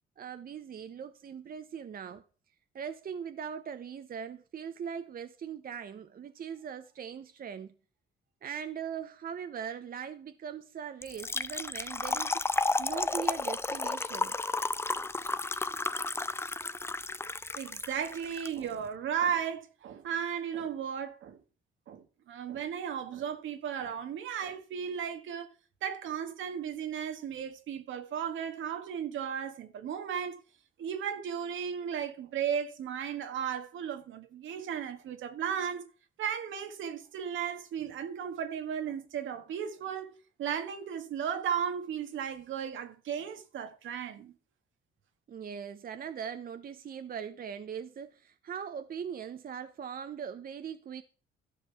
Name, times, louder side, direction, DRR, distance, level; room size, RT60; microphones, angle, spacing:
voice 1, 0.2-2.2 2.7-7.7 8.4-12.4 12.8-14.3 45.3-51.0, right 7 dB, 45° right, 0.8 m, -40 dB
Trickle dribble / Fill (with liquid), 11.0-18.5, left 3 dB, 10° left, 0.5 m, -32 dB
voice 2, 17.5-21.4 21.9-25.5 25.8-30.4 30.8-35.8 36.2-44.3, right 8 dB, 75° right, 1.7 m, -35 dB
13.5 x 5.2 x 5.8 m
cardioid pair, 90°, 20 cm